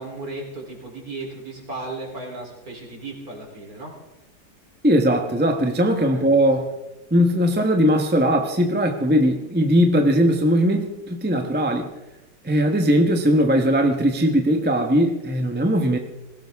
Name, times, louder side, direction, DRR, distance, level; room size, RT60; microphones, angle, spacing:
voice 1, 0.0-4.0 6.1-6.2, right 2 dB, 50° right, 0 dB, 4.3 m, -35 dB
voice 2, 4.8-6.7 7.1-11.9 12.4-16.0, equal, 5° right, 3 dB, 1.0 m, -19 dB
20.0 x 17.0 x 3.6 m, 0.97 s
omnidirectional pair, 1.9 m